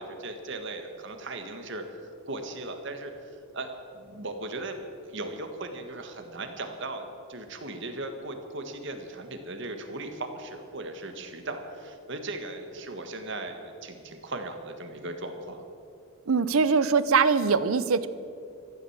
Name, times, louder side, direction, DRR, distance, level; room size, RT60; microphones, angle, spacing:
voice 1, 0.0-1.8 2.3-15.6, right 2 dB, 55° right, 6 dB, 1.6 m, -38 dB
voice 2, 16.3-18.1, right 5 dB, 80° right, 15 dB, 0.7 m, -22 dB
14.5 x 12.0 x 7.3 m, 2.5 s
head